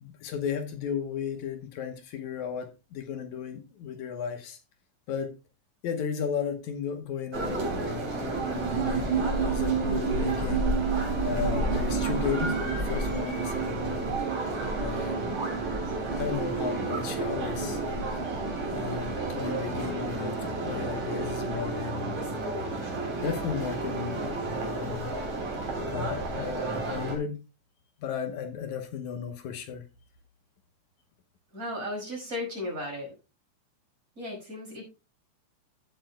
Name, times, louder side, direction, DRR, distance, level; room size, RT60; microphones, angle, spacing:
voice 1, 0.0-4.6 5.1-5.3 5.8-10.7 11.2-14.1 14.8-15.4 16.1-17.8 18.7-22.2 23.2-25.1 25.9-27.4 28.0-29.8, left 7 dB, 75° left, 7 dB, 2.3 m, -35 dB
sound 1, 7.3-27.2, right 2 dB, 65° right, 4.8 m, -31 dB
sound 2, 7.3-21.7, right 8 dB, 85° right, 5.1 m, -34 dB
Bass guitar, 16.8-18.1 18.3-20.5 20.7-22.9 23.1-25.3 25.5-26.4, left 3 dB, 15° left, 3.9 m, -47 dB
voice 2, 31.5-33.1 34.2-34.8, left 1 dB, 25° right, -1 dB, 5.6 m, -35 dB
15.5 x 8.8 x 2.2 m, 0.29 s
omnidirectional pair, 3.5 m